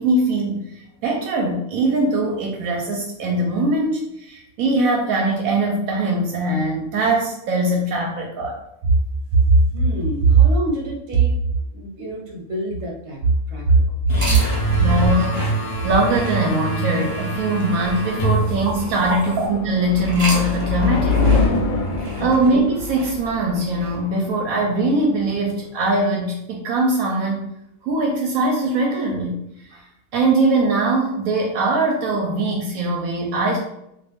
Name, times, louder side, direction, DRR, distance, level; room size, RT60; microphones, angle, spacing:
voice 1, 0.0-8.6 14.7-15.4 15.8-21.2 22.2-27.5 27.8-29.4 29.7-29.8 30.1-33.6, right 2 dB, 80° right, -1 dB, 1.0 m, -21 dB
voice 2, 9.3-11.3 11.7-14.4 14.7-14.8 19.1-19.2 22.1-22.4, right 4 dB, 55° right, -1 dB, 1.1 m, -19 dB
sound 1, 14.1-19.5, right 2 dB, 40° left, 0.5 m, -25 dB
sound 2, 14.1-19.4 19.9-24.0, right 1 dB, 30° right, 0.6 m, -35 dB
sound 3, 16.9-25.7, left 3 dB, 75° left, 1.0 m, -26 dB
2.6 x 2.5 x 3.5 m, 0.81 s
omnidirectional pair, 1.4 m